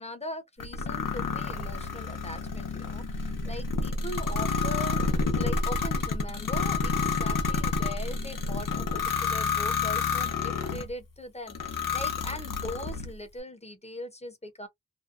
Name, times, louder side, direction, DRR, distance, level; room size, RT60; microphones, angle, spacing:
voice 1, 0.0-14.7, left 1 dB, 20° left, 0.7 m, -40 dB
sound 1, 0.6-10.9 11.5-13.1, left 4 dB, 90° left, 0.7 m, -29 dB
2.6 x 2.1 x 2.4 m
wide cardioid pair, 70°, 32 cm